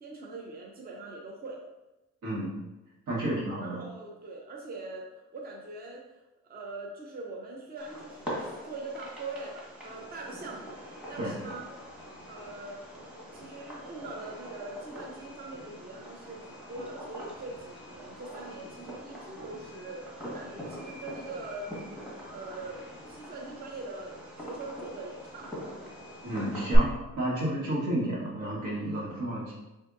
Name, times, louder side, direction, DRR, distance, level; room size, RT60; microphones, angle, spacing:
voice 1, 0.0-1.6 3.6-11.6 12.3-12.9 13.3-21.7 22.3-25.7, right 3 dB, 30° right, -1 dB, 0.7 m, -42 dB
voice 2, 2.2-2.5 3.1-3.8 11.2-11.3 26.2-26.9 27.2-29.5, right 1 dB, 75° right, -4 dB, 1.5 m, -31 dB
Fireworks, 7.8-26.8, equal, 5° right, 1.5 m, -42 dB
5.7 x 2.6 x 2.6 m, 1.0 s
cardioid pair, 90°, 30 cm